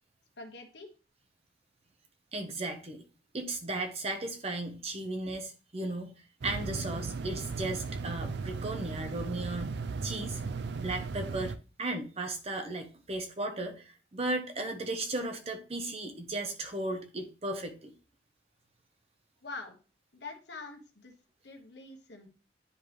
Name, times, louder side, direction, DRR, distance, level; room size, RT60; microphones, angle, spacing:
voice 1, 0.4-0.9 19.4-19.8 20.1-21.1 21.4-22.3, left 3 dB, 70° left, 3 dB, 1.2 m, -45 dB
voice 2, 2.3-3.0 3.3-6.1 6.4-10.4 10.8-11.5 11.8-17.9, right 2 dB, 35° right, 5 dB, 0.9 m, -36 dB
sound 1, 6.4-11.6, right 4 dB, 65° right, 0.4 m, -36 dB
9.8 x 3.4 x 3.1 m, 0.35 s
head